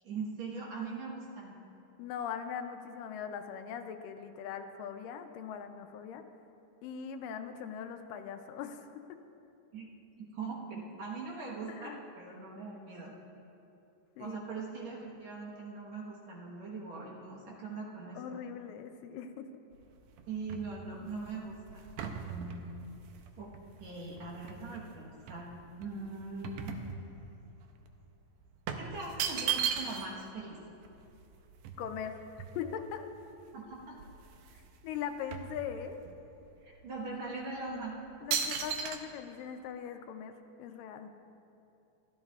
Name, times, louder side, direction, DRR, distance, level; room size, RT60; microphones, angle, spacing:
voice 1, 0.0-1.6 9.7-9.9 10.2-13.1 14.2-18.4 20.3-22.5 23.4-23.5 23.8-26.7 28.8-30.6 33.5-34.0 36.6-37.9, right 3 dB, 60° right, -4 dB, 2.3 m, -41 dB
voice 2, 2.0-6.2 6.8-9.2 11.7-12.0 14.2-14.4 18.2-19.5 31.8-32.2 32.5-33.1 34.8-36.0 38.2-41.1, left 8 dB, 80° left, 7 dB, 2.2 m, -40 dB
sound 1, 19.7-24.8 25.3-27.5 27.8-27.9 28.7-30.2 30.5-30.6 30.8-33.0 33.5-33.6 33.9-34.7 34.9-36.2 36.7-36.9 37.5-37.8 38.3-39.0, right 7 dB, 80° right, 1.6 m, -37 dB
15.5 x 13.0 x 2.4 m, 2.8 s
omnidirectional pair, 4.0 m